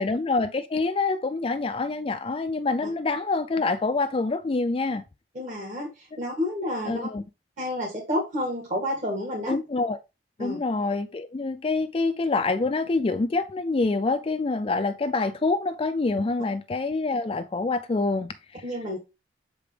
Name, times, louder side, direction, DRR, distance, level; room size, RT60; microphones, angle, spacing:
voice 1, 0.0-5.0 6.7-7.2 9.5-10.0 10.4-18.6, left 3 dB, 30° left, 0.4 m, -26 dB
voice 2, 5.3-7.0 7.6-9.6 10.4-10.6 18.6-19.0, left 1 dB, 40° right, 2.0 m, -30 dB
6.8 x 5.0 x 3.3 m
head